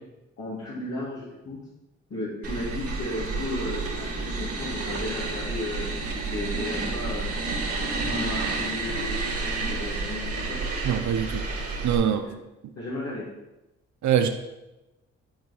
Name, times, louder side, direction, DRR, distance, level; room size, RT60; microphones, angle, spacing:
voice 1, 0.4-1.6 2.1-7.3 8.0-10.6 12.8-13.3, left 1 dB, 50° left, -9 dB, 2.4 m, -34 dB
sound 1, 2.4-12.0, right 3 dB, 45° right, 2.0 m, -30 dB
voice 2, 10.8-11.4 11.8-12.3 14.0-14.3, right 9 dB, 65° right, 7 dB, 0.7 m, -23 dB
10.0 x 4.4 x 4.2 m, 0.99 s
cardioid pair, 70°, 31 cm